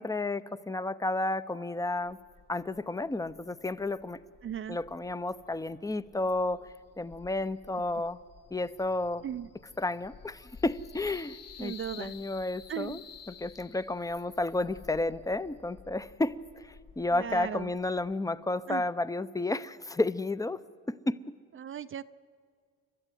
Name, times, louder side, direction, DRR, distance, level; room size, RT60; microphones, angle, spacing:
voice 1, 0.0-2.2 2.5-4.2 4.7-6.6 7.0-8.2 8.5-9.2 9.8-13.0 13.3-20.6 20.9-21.3, left 2 dB, 10° left, 15 dB, 0.6 m, -32 dB
sound 1, 2.0-18.2, left 5 dB, 70° left, 4.7 m, -57 dB
voice 2, 4.4-4.8 9.2-9.5 11.6-12.1 12.7-13.0 17.1-17.7 18.7-18.8 21.5-22.0, right 9 dB, 45° right, 12 dB, 0.5 m, -37 dB
sound 2, 8.3-14.3, left 8 dB, 55° left, 1.1 m, -51 dB
29.5 x 12.5 x 9.2 m, 2.1 s
cardioid pair, 90°, 30 cm